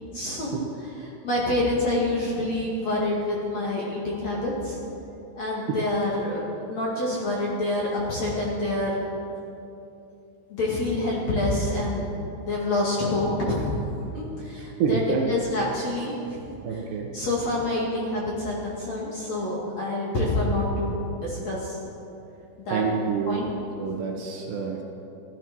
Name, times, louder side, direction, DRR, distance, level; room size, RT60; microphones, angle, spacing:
voice 1, 0.1-0.6 1.2-4.8 5.4-9.0 10.5-12.1 12.5-13.6 14.1-16.4 16.7-16.8 17.1-21.8 22.7-22.8 23.3-23.5, left 2 dB, 45° left, -4 dB, 2.6 m, -27 dB
voice 2, 14.6-15.2 16.6-17.1 22.7-23.4 23.8-24.8, right 6 dB, 70° right, 2 dB, 3.0 m, -27 dB
15.5 x 13.5 x 6.1 m, 2.8 s
omnidirectional pair, 5.5 m